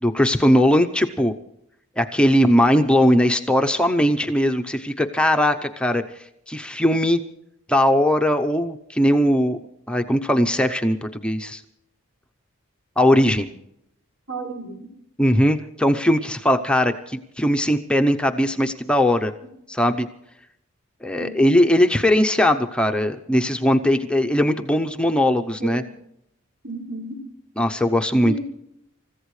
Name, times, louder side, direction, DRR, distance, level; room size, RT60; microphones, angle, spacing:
voice 1, 0.0-1.3 2.0-7.2 7.7-9.6 9.9-11.6 13.0-13.5 15.2-19.3 19.7-20.1 21.0-25.8 27.6-28.3, equal, 5° left, 5 dB, 0.7 m, -19 dB
voice 2, 14.3-14.9 19.4-19.5 21.2-21.3 25.6-25.9 26.6-27.2 28.2-28.4, right 3 dB, 70° right, -2 dB, 5.5 m, -32 dB
29.0 x 15.0 x 3.2 m, 0.78 s
head